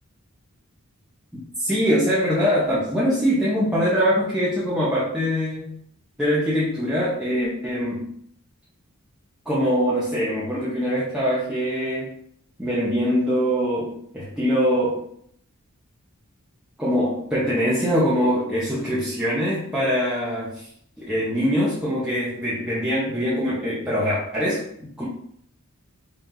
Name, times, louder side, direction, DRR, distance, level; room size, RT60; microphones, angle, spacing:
voice 1, 1.3-5.7 6.2-8.1 9.5-12.1 12.6-15.0 16.8-20.7 21.0-25.1, equal, 5° right, -10 dB, 0.9 m, -23 dB
5.5 x 3.2 x 2.7 m, 0.67 s
head